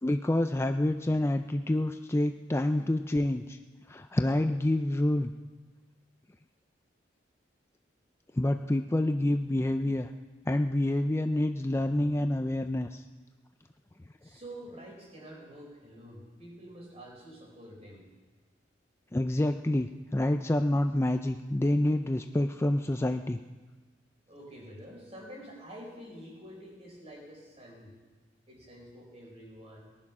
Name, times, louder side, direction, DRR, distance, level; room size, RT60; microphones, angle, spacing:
voice 1, 0.0-3.6 3.9-5.3 8.3-10.1 10.5-13.0 19.1-23.4, left 1 dB, 15° left, 7 dB, 0.4 m, -27 dB
voice 2, 14.2-18.0 24.3-27.9 28.5-29.9, equal, 35° right, -2 dB, 4.7 m, -47 dB
19.0 x 11.0 x 6.1 m, 1.3 s
head